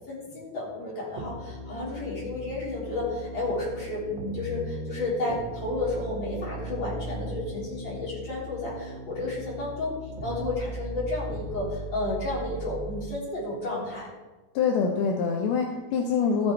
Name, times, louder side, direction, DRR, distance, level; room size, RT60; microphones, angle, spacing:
voice 1, 0.1-9.9 10.2-14.1, left 2 dB, 30° left, -6 dB, 3.9 m, -32 dB
sound 1, 1.2-13.2, right 1 dB, 65° right, 1.1 m, -38 dB
voice 2, 14.6-16.5, left 6 dB, 75° left, 1 dB, 2.7 m, -25 dB
14.0 x 7.5 x 4.5 m, 1.2 s
omnidirectional pair, 4.7 m